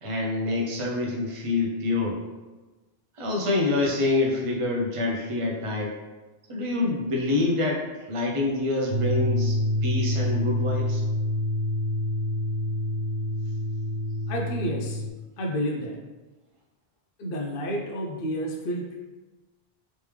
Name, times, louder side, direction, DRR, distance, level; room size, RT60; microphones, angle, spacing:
voice 1, 0.0-2.2 3.2-6.0 6.5-11.0, left 2 dB, 35° right, -2 dB, 0.6 m, -26 dB
sound 1, 8.9-15.1, left 1 dB, 90° right, 0.8 m, -27 dB
voice 2, 14.3-15.0 15.4-16.0 17.2-19.0, equal, 65° left, 0 dB, 0.8 m, -30 dB
3.3 x 3.2 x 3.2 m, 1.2 s
omnidirectional pair, 1.0 m